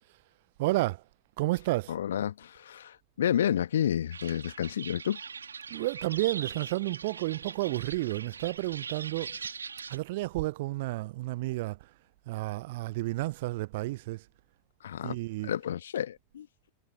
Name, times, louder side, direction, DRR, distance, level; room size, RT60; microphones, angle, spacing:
voice 1, 0.6-1.0 1.4-2.0 5.7-9.4 9.9-11.9 12.3-14.2 15.0-15.5, right 19 dB, 50° right, 0.7 m, -31 dB
voice 2, 1.9-5.2 14.8-15.2 15.4-16.5, left 10 dB, 65° left, 1.5 m, -30 dB
sound 1, 4.1-10.0, right 5 dB, 75° right, 2.5 m, -41 dB
figure-of-eight pair, 90°, 0 cm